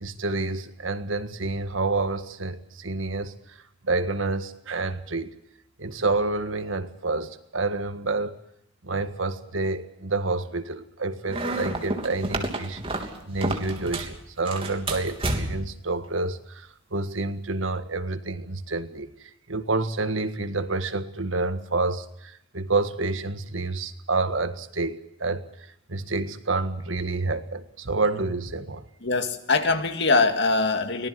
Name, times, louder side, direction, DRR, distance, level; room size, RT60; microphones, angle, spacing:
voice 1, 0.0-3.3 3.9-5.3 5.8-8.3 8.8-12.8 13.3-19.1 19.5-25.4 25.9-28.8, right 3 dB, 85° right, 1.7 m, -28 dB
sound 1, 11.3-14.2 14.5-15.8, right 2 dB, 30° right, 3.2 m, -30 dB
voice 2, 29.0-31.1, left 3 dB, 65° left, 2.2 m, -22 dB
24.5 x 19.0 x 7.8 m
head